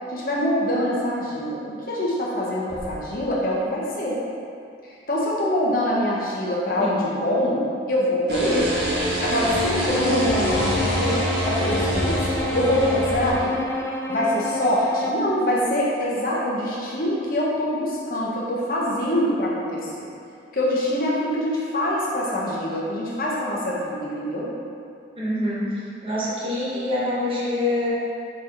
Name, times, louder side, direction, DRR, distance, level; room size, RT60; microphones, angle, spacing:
voice 1, 0.1-4.2 5.1-8.7 9.2-11.2 11.4-12.2 12.5-13.6 14.1-20.1 20.5-24.5, left 1 dB, 50° left, -5 dB, 1.1 m, -24 dB
sound 1, 2.7-4.3, equal, 70° left, 1.3 m, -43 dB
sound 2, 8.3-13.3, equal, 75° right, 1.5 m, -24 dB
Bowed string instrument, 9.9-15.3, left 1 dB, 15° left, 0.3 m, -30 dB
voice 2, 25.2-25.7 26.0-27.9, left 1 dB, 30° right, -7 dB, 1.2 m, -25 dB
7.3 x 4.2 x 3.1 m, 2.5 s
head